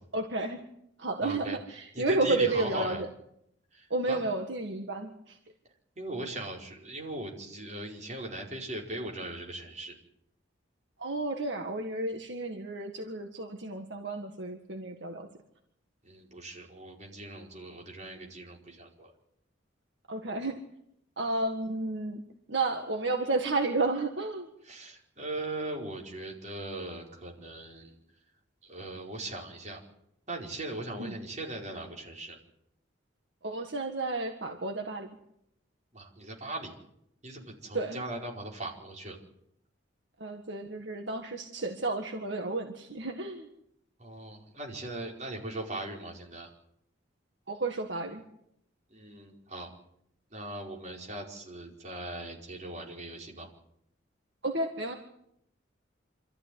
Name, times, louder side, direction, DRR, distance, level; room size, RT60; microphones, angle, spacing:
voice 1, 0.1-0.6 1.0-3.1 3.9-5.4 11.0-15.3 20.1-20.6 21.2-22.2 22.5-24.5 31.0-31.2 33.4-35.1 37.7-38.0 40.2-43.5 47.5-48.2 54.4-54.9, right 2 dB, 65° right, 4 dB, 1.8 m, -32 dB
voice 2, 1.2-1.6 1.9-3.0 3.7-4.2 6.0-9.9 16.0-19.1 24.6-27.9 28.6-29.8 30.3-32.4 35.9-36.7 37.2-39.2 44.0-46.5 48.9-49.7 50.3-53.5, right 2 dB, 40° right, 0 dB, 5.0 m, -39 dB
26.0 x 14.0 x 9.6 m, 0.77 s
head